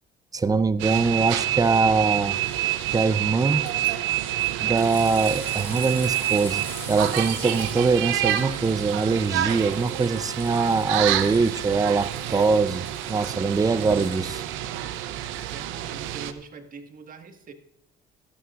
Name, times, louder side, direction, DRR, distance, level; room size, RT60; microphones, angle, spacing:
voice 1, 0.3-2.4 2.9-3.6 4.6-14.4, right 4 dB, 20° right, 15 dB, 0.6 m, -23 dB
sound 1, 0.8-16.3, right 12 dB, 90° right, 0.7 m, -28 dB
sound 2, 3.7-3.9 4.4-14.5 15.3-15.4, left 2 dB, 10° left, 5.0 m, -43 dB
voice 2, 15.5-17.5, right 4 dB, 45° right, 6 dB, 1.6 m, -43 dB
17.5 x 12.5 x 2.5 m, 0.77 s
cardioid pair, 95°, 20 cm